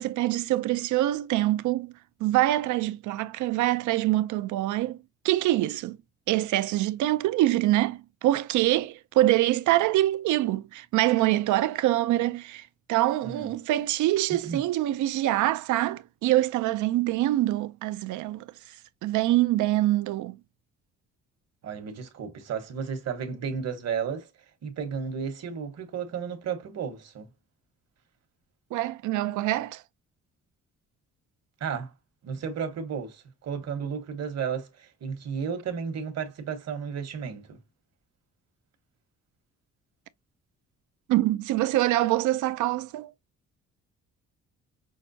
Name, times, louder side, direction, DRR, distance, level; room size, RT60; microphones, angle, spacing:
voice 1, 0.0-1.9 2.2-5.0 5.2-6.0 6.3-18.8 19.0-20.4 28.7-29.8 41.1-43.1, right 15 dB, 75° right, 0.4 m, -25 dB
voice 2, 21.6-24.3 24.6-27.3 31.6-31.9 32.2-37.6, right 6 dB, 60° right, 1.1 m, -33 dB
5.8 x 2.1 x 2.6 m
cardioid pair, 90°, 30 cm